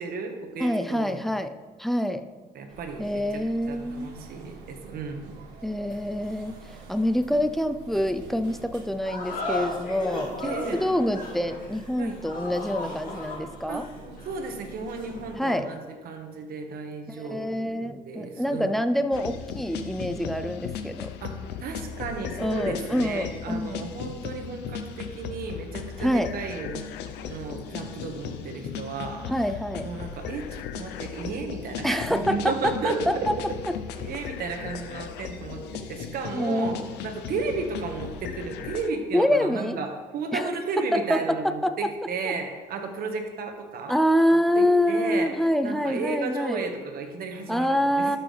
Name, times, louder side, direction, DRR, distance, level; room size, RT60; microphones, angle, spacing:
voice 1, 0.0-1.3 2.5-3.4 3.7-5.3 10.4-10.8 12.0-12.2 13.7-13.8 14.2-18.7 21.2-21.3 21.6-26.8 27.2-29.4 29.8-33.6 33.9-36.8 37.0-44.0 44.6-45.3 45.6-48.1, right 4 dB, 60° right, 4 dB, 1.4 m, -33 dB
voice 2, 0.6-1.5 1.8-2.3 3.0-4.1 5.6-6.5 6.9-13.9 15.4-15.7 17.1-21.1 22.4-23.8 26.0-26.3 29.3-29.9 31.8-32.9 36.3-36.8 39.1-39.8 40.3-40.5 40.9-41.7 42.3-42.4 43.9-46.6 47.5-48.2, equal, ahead, 9 dB, 0.4 m, -26 dB
sound 1, 2.7-15.4, right 4 dB, 90° right, 1.5 m, -46 dB
sound 2, 9.0-15.7, left 2 dB, 55° left, 2.6 m, -36 dB
sound 3, 19.1-38.9, left 8 dB, 80° left, 0.6 m, -37 dB
12.0 x 6.2 x 3.3 m, 1.4 s
cardioid pair, 110°, 17 cm